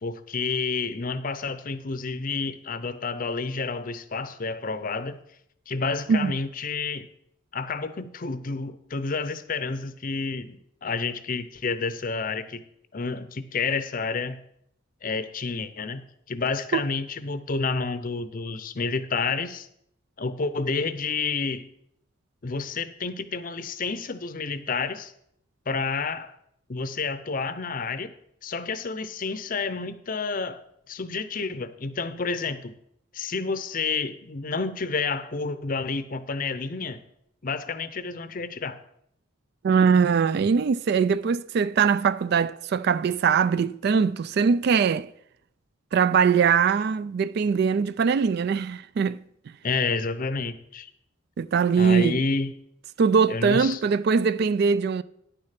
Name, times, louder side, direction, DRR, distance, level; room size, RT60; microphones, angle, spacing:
voice 1, 0.0-5.2 5.7-7.1 7.5-12.6 12.9-14.4 15.0-16.0 16.3-19.7 20.2-21.7 22.4-25.1 25.7-26.3 26.7-28.1 28.4-30.6 30.9-32.7 33.1-37.0 37.4-38.8 49.6-50.9 51.8-52.5 53.3-53.8, left 4 dB, 40° left, 0.6 m, -29 dB
voice 2, 39.6-45.1 45.9-49.2 51.4-52.2 53.0-55.0, right 6 dB, 50° right, 0.3 m, -22 dB
9.7 x 6.4 x 5.8 m
head